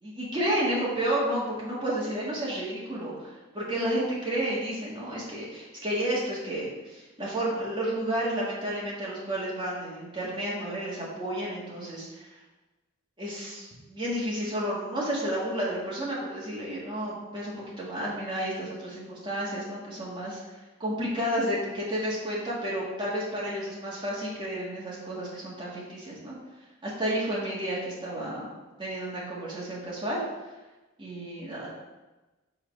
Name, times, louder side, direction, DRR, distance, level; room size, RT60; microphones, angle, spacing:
voice 1, 0.0-12.3 13.2-20.4 20.8-26.4 26.8-28.5 28.8-30.2 31.0-31.7, right 1 dB, 25° right, -6 dB, 1.8 m, -31 dB
5.8 x 3.9 x 5.3 m, 1.1 s
head